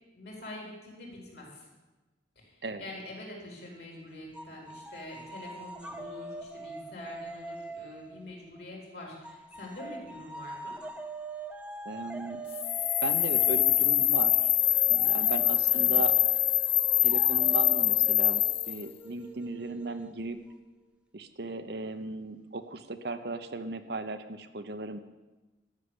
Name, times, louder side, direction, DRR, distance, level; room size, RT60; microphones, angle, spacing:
voice 1, 0.1-1.7 2.4-10.8 15.7-16.0, left 1 dB, 55° left, -1 dB, 4.4 m, -45 dB
sound 1, 4.3-8.7 9.2-20.6, right 2 dB, 5° right, 0.8 m, -44 dB
voice 2, 11.8-12.4 13.0-14.5 14.9-16.1 17.0-18.4 18.7-20.4 21.1-25.0, right 3 dB, 60° right, 9 dB, 0.8 m, -36 dB
sound 2, 12.5-18.8, left 13 dB, 30° left, 0.4 m, -24 dB
13.0 x 6.7 x 9.9 m, 1.1 s
head